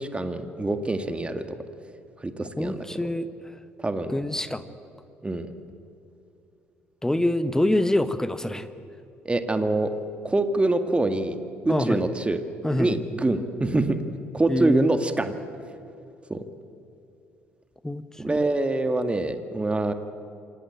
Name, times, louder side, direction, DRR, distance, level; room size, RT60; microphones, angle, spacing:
voice 1, 0.0-1.6 2.2-2.9 3.8-4.1 5.2-5.5 9.3-9.9 10.2-11.4 11.7-12.4 12.8-14.0 14.3-15.4 16.3-16.4 18.2-19.9, right 2 dB, 15° right, 8 dB, 2.0 m, -25 dB
voice 2, 2.6-3.3 4.1-4.7 7.0-8.7 11.7-12.0 12.6-13.0 14.5-14.9 17.8-18.0 18.3-18.4, left 1 dB, 10° left, 12 dB, 1.4 m, -25 dB
27.0 x 18.0 x 8.9 m, 2.7 s
figure-of-eight pair, 50°, 7 cm